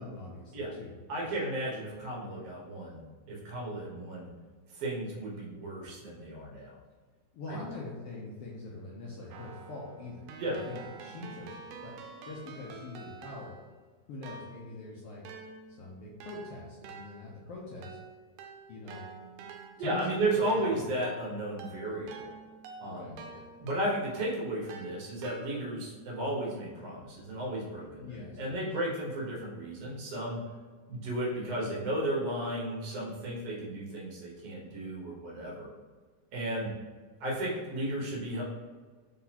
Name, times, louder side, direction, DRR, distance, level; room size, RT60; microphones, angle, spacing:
voice 1, 0.0-1.0 7.3-12.0 12.2-13.6 14.1-15.2 15.8-18.0 18.7-19.0 19.8-20.9 22.8-23.4 28.0-28.6, left 2 dB, 75° left, -5 dB, 1.3 m, -43 dB
voice 2, 1.1-3.0 3.3-4.3 4.7-6.7 7.5-7.6 10.4-10.6 19.8-22.2 22.8-23.1 23.6-30.4 30.9-35.7 36.3-36.7 37.2-38.4, right 1 dB, 60° right, -4 dB, 2.0 m, -34 dB
Keyboard (musical), 9.3-13.8 14.2-24.2 24.7-25.9, right 4 dB, 90° right, 2.0 m, -48 dB
4.8 x 3.8 x 2.8 m, 1.5 s
omnidirectional pair, 3.4 m